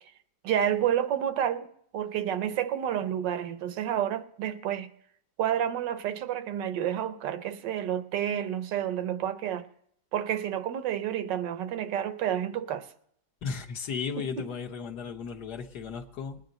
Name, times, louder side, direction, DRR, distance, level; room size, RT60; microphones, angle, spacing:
voice 1, 0.4-1.7 1.9-4.9 5.4-9.7 10.1-12.9 14.2-14.5, right 10 dB, 90° right, 1.4 m, -30 dB
voice 2, 13.4-16.4, left 6 dB, 70° left, 1.5 m, -35 dB
20.5 x 9.4 x 3.9 m
omnidirectional pair, 1.9 m